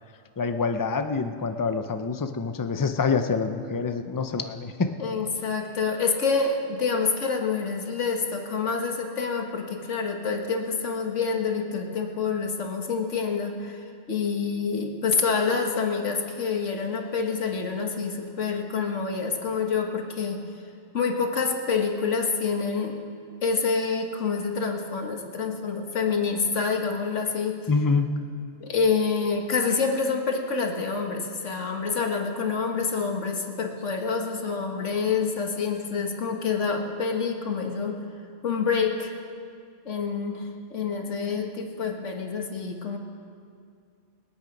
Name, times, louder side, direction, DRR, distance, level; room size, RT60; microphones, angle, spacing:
voice 1, 0.4-4.9 27.7-28.1, left 4 dB, 25° left, 8 dB, 0.5 m, -26 dB
voice 2, 5.0-20.4 20.9-23.0 23.4-27.6 28.6-38.0 38.4-39.1 39.8-43.0, left 5 dB, 70° left, 3 dB, 1.8 m, -27 dB
25.5 x 8.9 x 5.3 m, 2.3 s
omnidirectional pair, 1.3 m